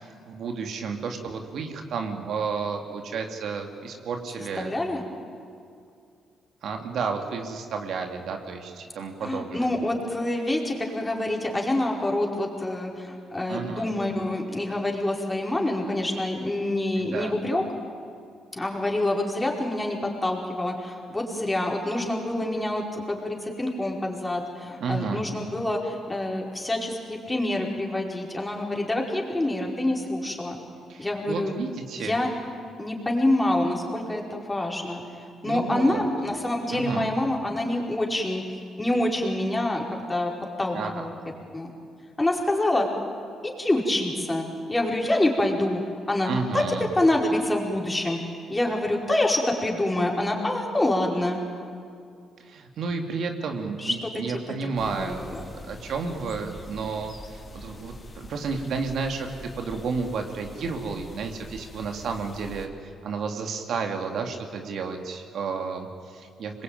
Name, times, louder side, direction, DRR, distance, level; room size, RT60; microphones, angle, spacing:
voice 1, 0.3-4.7 6.6-9.7 13.5-13.8 17.0-17.3 24.8-25.2 30.9-32.2 35.5-36.1 36.7-37.1 40.7-41.1 46.3-46.9 52.4-66.6, right 5 dB, 70° right, 4 dB, 2.4 m, -32 dB
voice 2, 4.6-5.0 9.2-17.6 18.5-30.6 31.0-31.5 32.0-32.3 32.8-35.0 35.4-38.4 38.8-40.3 40.6-41.1 41.5-41.7 42.2-42.9 43.4-45.8 46.1-48.2 48.5-51.4 53.8-54.4 54.8-55.4, left 1 dB, 15° left, 0 dB, 4.9 m, -26 dB
sound 1, 54.8-62.7, left 1 dB, 35° left, 3.2 m, -44 dB
25.5 x 22.0 x 9.3 m, 2.3 s
cardioid pair, 90°, 0 cm